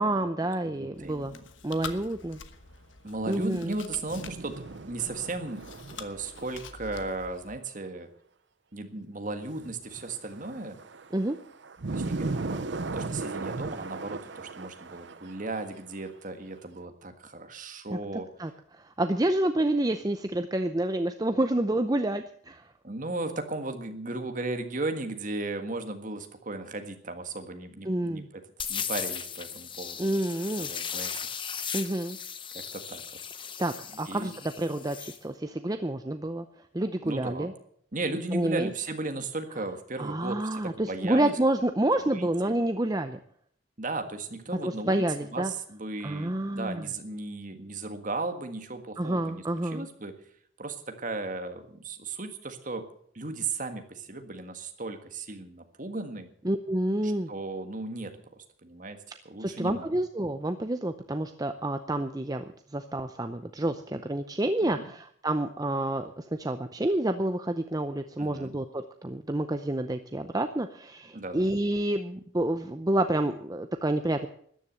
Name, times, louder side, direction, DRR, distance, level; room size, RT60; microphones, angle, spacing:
voice 1, 0.0-1.3 1.6-2.4 3.3-3.7 11.1-11.4 17.9-18.0 18.4-22.7 27.9-28.3 30.0-30.7 31.7-32.2 33.6-36.5 36.7-37.5 38.3-38.7 40.0-43.2 44.6-45.5 46.0-46.8 49.0-49.9 56.4-57.3 59.4-62.4 62.7-74.3, right 1 dB, 20° right, 8 dB, 0.6 m, -29 dB
voice 2, 0.6-1.4 3.0-5.7 6.0-8.1 8.7-10.8 11.9-18.3 22.8-28.3 28.7-30.2 30.6-31.1 31.6-31.7 32.5-33.0 34.1-34.3 37.0-37.5 37.9-41.4 42.1-42.5 43.8-45.1 45.3-50.1 50.6-52.9 53.1-56.3 57.0-58.2 58.6-59.9 64.6-64.9 68.2-68.5 71.1-71.4, right 2 dB, 40° right, 7 dB, 1.7 m, -36 dB
Chewing mastication, 0.9-7.6, left 5 dB, 70° left, 1.2 m, -46 dB
sound 1, 4.1-6.4 6.9-7.0 9.5-15.8 16.1-16.2, right 3 dB, 60° right, 0.7 m, -37 dB
sound 2, 28.6-35.2, left 7 dB, 25° left, 0.9 m, -37 dB
13.5 x 10.0 x 7.8 m, 0.65 s
head